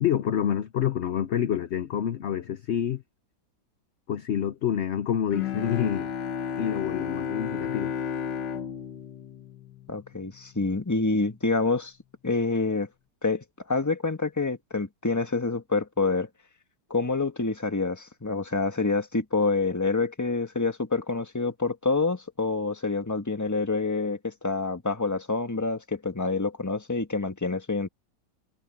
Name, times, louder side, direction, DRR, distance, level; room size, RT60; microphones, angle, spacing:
voice 1, 0.0-3.0 4.1-6.1 6.6-7.9, left 9 dB, 60° left, 0.7 m, -27 dB
Bowed string instrument, 5.3-10.4, left 7 dB, 80° left, 1.8 m, -33 dB
voice 2, 9.9-11.9 12.2-12.9 13.2-16.3 16.9-27.9, left 3 dB, 10° left, 1.2 m, -27 dB
omnidirectional pair, 1.9 m